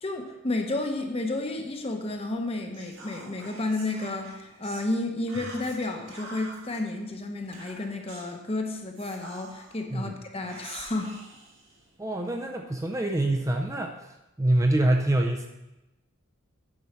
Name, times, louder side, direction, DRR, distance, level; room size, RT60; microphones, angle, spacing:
voice 1, 0.0-11.1, left 2 dB, 30° left, 4 dB, 0.9 m, -31 dB
Whispering, 2.7-4.9 5.3-6.8 7.5-8.3 8.9-9.8 10.4-12.3, right 2 dB, 65° right, 1.8 m, -46 dB
voice 2, 12.0-13.9 14.4-15.5, right 1 dB, 15° right, 2 dB, 0.5 m, -25 dB
9.6 x 5.5 x 4.6 m, 0.97 s
head